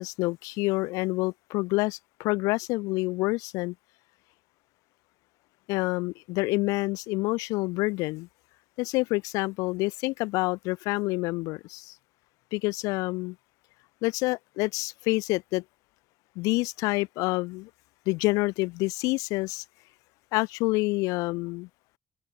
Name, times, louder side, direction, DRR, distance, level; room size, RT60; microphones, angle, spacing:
voice 1, 0.0-3.7 5.7-8.3 8.8-11.9 12.5-13.4 14.0-15.6 16.3-17.7 18.1-19.6 20.3-21.7, left 23 dB, 80° left, 1.2 m, -28 dB
hypercardioid pair, 45°, 6 cm